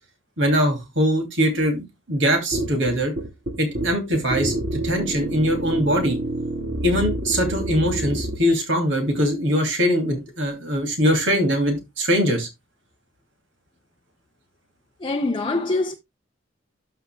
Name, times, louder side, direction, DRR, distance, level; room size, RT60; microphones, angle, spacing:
voice 1, 0.4-3.1 3.6-4.5 4.8-6.2 6.8-12.5, equal, 65° right, 2.5 m, -22 dB
sound 1, 2.5-8.4, right 1 dB, 50° right, 1.8 m, -28 dB
voice 2, 15.0-15.9, left 2 dB, 25° left, 0.5 m, -24 dB
13.0 x 5.7 x 2.2 m
head